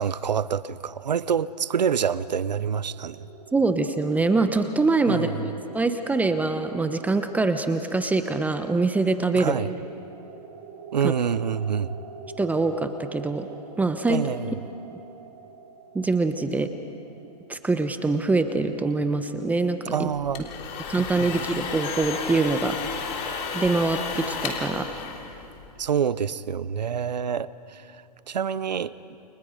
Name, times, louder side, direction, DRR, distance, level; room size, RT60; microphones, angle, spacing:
voice 1, 0.0-3.2 5.1-5.3 9.3-9.7 10.9-12.0 14.1-14.5 19.9-20.4 21.0-21.3 25.8-27.9 28.3-28.9, right 7 dB, 90° right, 17 dB, 0.8 m, -26 dB
sound 1, 1.8-18.4, right 5 dB, 55° right, 5.2 m, -45 dB
voice 2, 3.5-5.4 5.7-9.6 11.0-11.1 12.4-13.5 13.8-14.2 15.9-16.7 17.5-20.1 20.9-22.8 23.5-24.9, right 3 dB, 5° right, 8 dB, 0.9 m, -24 dB
sound 2, 20.1-25.9, left 6 dB, 35° left, 3.3 m, -33 dB
29.5 x 27.0 x 5.1 m, 2.8 s
hypercardioid pair, 130°, 21 cm